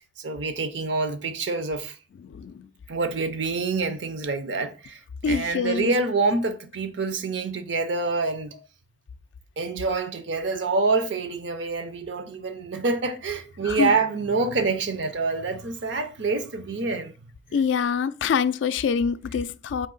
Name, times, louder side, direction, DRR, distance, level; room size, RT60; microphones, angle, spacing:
voice 1, 0.0-2.0 2.9-8.5 9.6-17.1 17.5-17.6, right 3 dB, 70° right, 0.6 m, -26 dB
voice 2, 2.2-2.7 5.2-5.9 13.7-13.9 17.5-19.9, left 6 dB, 75° left, 0.3 m, -25 dB
4.4 x 2.8 x 3.8 m
head